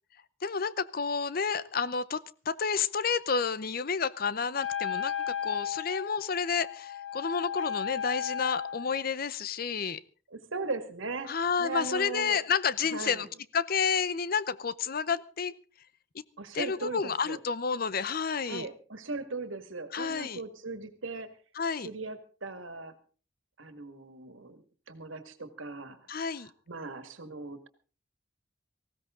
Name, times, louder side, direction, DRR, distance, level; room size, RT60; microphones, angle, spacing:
voice 1, 0.4-10.0 11.3-13.3 13.5-15.5 16.5-18.7 19.9-20.4 21.5-21.9 26.1-26.5, left 6 dB, 50° left, 17 dB, 0.7 m, -30 dB
Wind instrument woodwind instrument, 4.5-9.1, left 8 dB, 80° left, 2.5 m, -35 dB
voice 2, 10.3-12.4 12.8-13.3 16.4-17.4 18.5-21.3 21.8-23.0 23.6-27.7, right 3 dB, 85° right, 10 dB, 2.0 m, -39 dB
19.0 x 16.0 x 3.8 m, 0.37 s
head